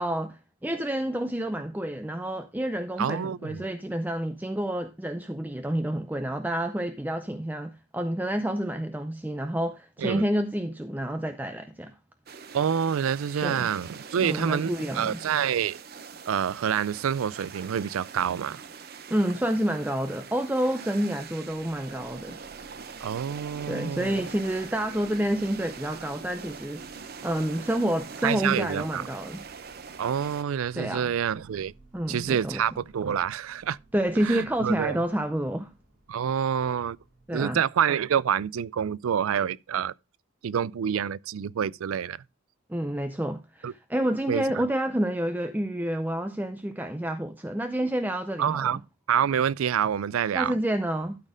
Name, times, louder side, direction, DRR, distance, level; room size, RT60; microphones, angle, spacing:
voice 1, 0.0-11.9 13.4-13.7 14.2-15.2 19.1-22.4 23.7-26.9 27.2-29.4 30.8-31.1 31.9-32.6 33.9-35.7 37.3-37.6 42.7-48.7 50.3-51.2, right 1 dB, 10° right, 0.5 m, -29 dB
voice 2, 3.0-3.7 10.0-10.2 12.5-15.8 16.3-18.6 23.0-24.2 28.2-29.0 30.0-31.7 32.1-33.8 34.2-35.0 36.1-37.0 37.3-39.9 40.4-42.2 43.6-43.7 44.3-44.6 48.4-48.8 49.1-50.6, right 8 dB, 90° right, 0.4 m, -27 dB
sound 1, 12.3-30.4, right 5 dB, 50° right, 0.7 m, -43 dB
sound 2, 21.1-37.7, right 2 dB, 65° right, 3.4 m, -57 dB
12.5 x 4.3 x 5.0 m
head